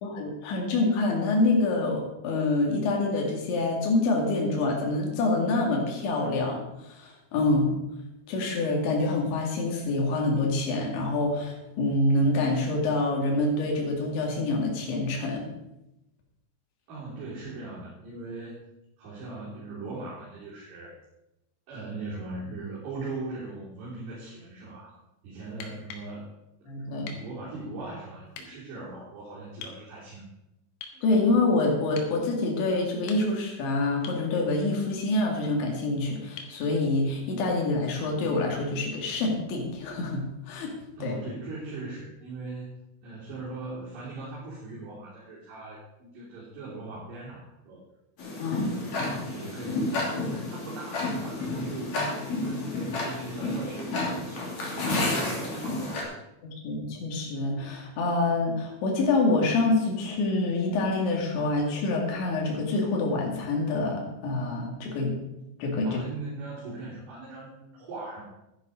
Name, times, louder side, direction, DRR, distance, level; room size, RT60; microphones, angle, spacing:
voice 1, 0.0-6.6 6.9-7.7 8.3-15.5 26.7-27.2 31.0-40.7 41.0-41.2 48.4-48.7 56.4-65.2 65.6-66.0, left 2 dB, 70° left, -1 dB, 4.6 m, -26 dB
voice 2, 16.9-18.6 19.0-20.9 21.7-25.0 25.2-26.3 26.9-30.3 30.9-31.1 41.0-42.7 43.0-47.8 48.5-56.2 65.8-68.2, right 3 dB, 60° right, -9 dB, 5.5 m, -39 dB
sound 1, 25.5-26.1 27.1-27.3 28.3-28.5 29.6-29.8 30.8-31.0 32.0-32.2 32.9-33.5 34.0-34.3 36.4-36.6 38.5-38.6, left 6 dB, 90° left, 4.0 m, -43 dB
Tick-tock, 48.2-56.0, left 2 dB, 40° left, 3.5 m, -31 dB
12.0 x 10.5 x 5.1 m, 0.91 s
omnidirectional pair, 5.6 m